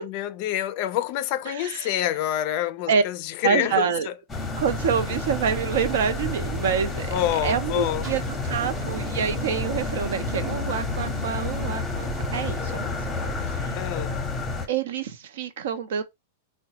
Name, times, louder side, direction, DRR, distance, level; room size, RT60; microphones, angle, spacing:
voice 1, 0.0-4.1 7.0-8.1 13.8-14.1, left 12 dB, 45° left, 0.4 m, -27 dB
voice 2, 1.5-2.0 2.9-3.0 3.4-4.1 4.6-13.0 13.2-13.3 13.6-13.8 14.7-16.0, right 6 dB, 75° right, 0.6 m, -27 dB
sound 1, 4.3-14.7, left 3 dB, 15° left, 0.7 m, -30 dB
sound 2, 4.6-13.6, right 4 dB, 25° right, 0.6 m, -38 dB
3.7 x 2.1 x 2.8 m
supercardioid pair, 140°, 0 cm